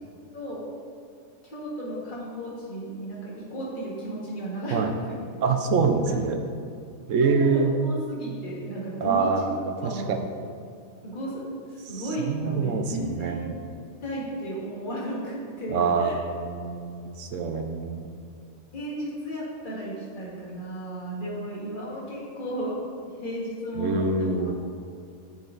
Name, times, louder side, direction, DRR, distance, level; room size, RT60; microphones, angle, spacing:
voice 1, 0.3-0.7 1.4-5.2 5.9-6.2 7.2-10.3 11.0-13.6 14.0-16.2 18.7-22.7 23.2-24.5, right 1 dB, 35° left, -6 dB, 1.9 m, -34 dB
voice 2, 5.4-6.4 7.1-7.7 9.0-10.2 12.2-13.6 15.7-18.1 23.8-24.5, right 4 dB, 70° right, 6 dB, 1.0 m, -25 dB
7.8 x 7.2 x 3.9 m, 2.4 s
omnidirectional pair, 1.4 m